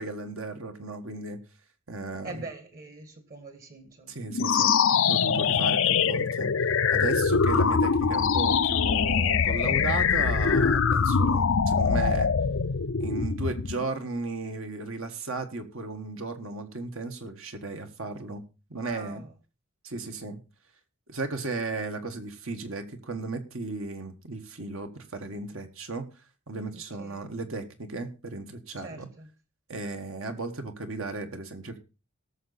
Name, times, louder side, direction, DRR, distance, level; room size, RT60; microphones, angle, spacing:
voice 1, 0.0-1.4 1.9-2.4 4.1-4.7 5.1-6.5 6.9-12.3 13.0-18.4 18.7-19.2 19.8-20.4 21.1-26.1 26.5-29.1 29.7-31.8, right 3 dB, 65° right, 1.5 m, -35 dB
voice 2, 2.2-4.3 18.8-19.3 26.7-27.2 28.8-29.3, right 3 dB, 40° right, 1.6 m, -43 dB
sound 1, 4.3-13.8, left 6 dB, 60° left, 0.5 m, -23 dB
18.5 x 6.7 x 4.1 m
head